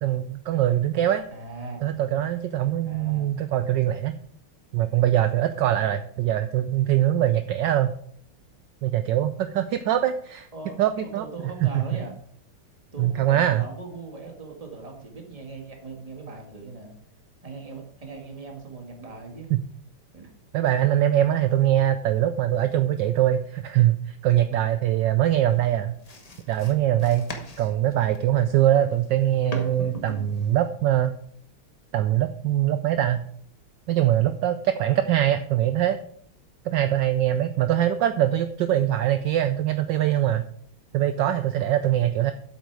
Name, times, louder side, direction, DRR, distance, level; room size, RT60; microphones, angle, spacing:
voice 1, 0.0-1.2 1.8-4.1 4.7-7.9 8.8-10.5 10.8-11.2 11.6-11.8 13.0-13.6 19.5-19.6 20.5-25.9 26.5-27.3 27.6-31.1 31.9-33.2 33.9-36.0 36.6-40.5 40.9-42.3, right 12 dB, 75° right, 10 dB, 1.1 m, -22 dB
voice 2, 1.3-1.8 2.8-3.3 10.5-10.8 11.0-12.1 12.9-16.9 17.4-19.5 20.1-20.3 25.5-25.8 40.9-41.0, right 3 dB, 15° right, 1 dB, 1.7 m, -39 dB
sound 1, 25.5-30.7, left 1 dB, 25° left, 0.9 m, -41 dB
8.3 x 8.0 x 4.7 m, 0.62 s
omnidirectional pair, 2.4 m